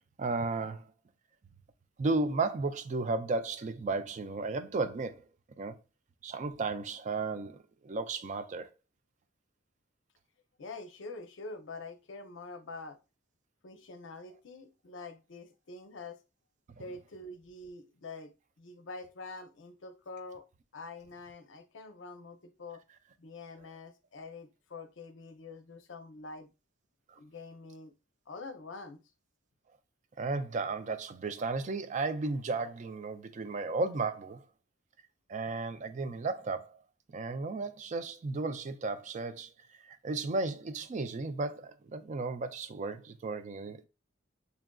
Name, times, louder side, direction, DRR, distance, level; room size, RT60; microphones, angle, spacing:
voice 1, 0.2-0.9 2.0-5.2 5.6-5.7 6.2-7.6 7.8-8.7 27.1-27.2 30.2-34.4 35.3-36.8 37.1-39.5 39.8-43.9, right 3 dB, 35° right, 0.3 m, -34 dB
voice 2, 10.6-13.0 13.6-16.2 16.8-18.3 18.6-20.4 20.7-22.8 23.2-26.5 27.2-27.9 28.3-29.0, left 3 dB, 65° left, 0.6 m, -46 dB
6.7 x 2.4 x 2.2 m
head